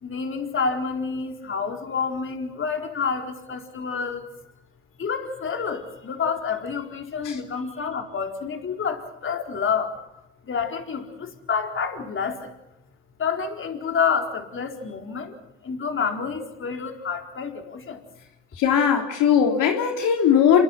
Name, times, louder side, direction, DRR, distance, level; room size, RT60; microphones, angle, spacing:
voice 1, 0.0-4.2 5.0-9.9 10.5-12.5 13.2-15.3 15.6-18.0, left 5 dB, 40° left, 4 dB, 4.2 m, -28 dB
voice 2, 18.6-20.6, left 8 dB, 70° left, 3 dB, 3.5 m, -19 dB
28.0 x 22.5 x 5.9 m, 0.92 s
supercardioid pair, 80°, 33 cm